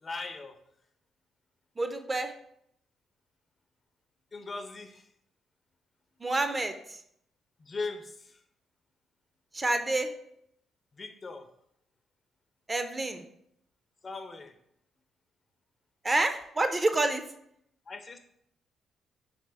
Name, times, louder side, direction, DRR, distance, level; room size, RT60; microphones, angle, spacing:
voice 1, 0.0-0.6 4.3-5.1 7.6-8.4 10.9-11.5 14.0-14.5 17.9-18.2, left 3 dB, 35° left, 7 dB, 0.5 m, -39 dB
voice 2, 1.8-2.3 6.2-7.0 9.5-10.1 12.7-13.2 16.0-17.3, right 2 dB, 25° right, 7 dB, 0.4 m, -28 dB
4.2 x 3.2 x 3.4 m, 0.73 s
cardioid pair, 90°, 0 cm